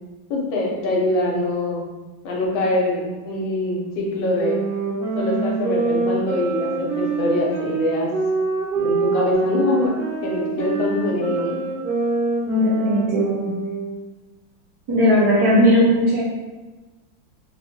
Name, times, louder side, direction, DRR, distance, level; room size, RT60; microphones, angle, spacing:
voice 1, 0.3-1.9 2.2-4.6 5.1-8.1 8.7-11.6, left 2 dB, 70° left, -2 dB, 1.3 m, -24 dB
sound 1, 4.4-14.0, right 4 dB, 90° right, 0.5 m, -25 dB
voice 2, 12.5-13.5 14.9-16.2, equal, 70° right, -4 dB, 0.9 m, -18 dB
3.8 x 2.1 x 3.0 m, 1.2 s
omnidirectional pair, 2.1 m